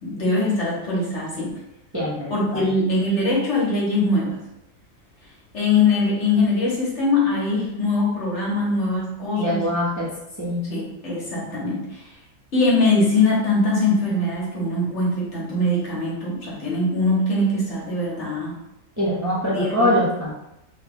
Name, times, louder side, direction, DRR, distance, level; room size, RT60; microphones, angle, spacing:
voice 1, 0.0-1.5 2.3-4.4 5.5-9.7 10.7-12.1 12.5-18.5 19.5-19.9, left 2 dB, 55° left, -5 dB, 1.3 m, -22 dB
voice 2, 1.9-2.6 9.4-10.1 10.4-10.7 19.0-20.3, equal, 20° right, -8 dB, 0.5 m, -23 dB
3.1 x 2.3 x 3.5 m, 0.89 s
omnidirectional pair, 1.4 m